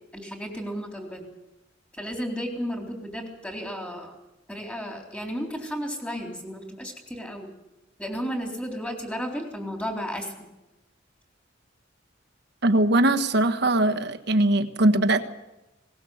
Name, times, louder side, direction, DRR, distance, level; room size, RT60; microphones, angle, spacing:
voice 1, 0.1-1.3 1.9-4.1 4.5-7.5 8.0-10.5, equal, 5° left, 2 dB, 3.9 m, -33 dB
voice 2, 12.6-15.2, right 1 dB, 60° right, 7 dB, 1.4 m, -21 dB
20.0 x 19.0 x 8.0 m, 0.96 s
head